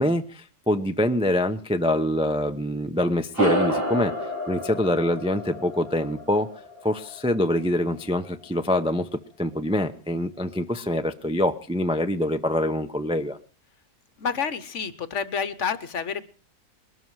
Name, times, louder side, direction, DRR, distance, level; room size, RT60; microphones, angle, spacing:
voice 1, 0.0-4.1 4.5-6.5 6.8-9.1 9.4-13.4, left 1 dB, 5° right, 7 dB, 0.5 m, -25 dB
sound 1, 3.3-8.1, equal, 40° right, 3.7 m, -29 dB
voice 2, 14.2-16.2, left 6 dB, 55° left, 14 dB, 1.2 m, -29 dB
21.0 x 13.0 x 4.8 m, 0.39 s
omnidirectional pair, 1.6 m